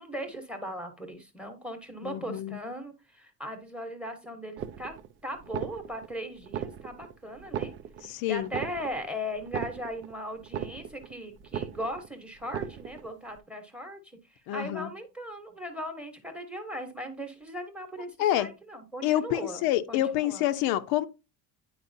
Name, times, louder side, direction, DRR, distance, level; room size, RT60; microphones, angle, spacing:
voice 1, 0.0-5.0 5.2-7.7 8.0-20.4, equal, 5° right, 0.9 m, -38 dB
voice 2, 2.0-2.6 8.0-8.5 14.5-14.9 18.2-18.5 19.0-21.1, left 13 dB, 80° left, 0.7 m, -27 dB
sound 1, 4.6-5.1 5.4-6.1 6.4-7.1 7.4-8.1 8.4-9.1 9.4-10.1 10.4-11.1 11.4-12.1 12.4-13.1, right 9 dB, 35° right, 0.4 m, -37 dB
9.5 x 4.7 x 2.6 m
cardioid pair, 175°, 36 cm